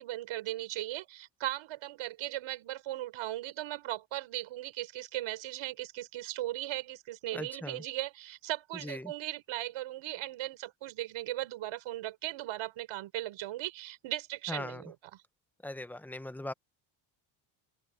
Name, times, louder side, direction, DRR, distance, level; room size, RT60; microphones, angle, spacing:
voice 1, 0.0-15.2, right 15 dB, 75° right, 5.9 m, -38 dB
voice 2, 7.3-7.8 8.8-9.1 14.5-14.8 15.6-16.5, left 1 dB, 5° left, 0.7 m, -39 dB
open air
cardioid pair, 150°, 48 cm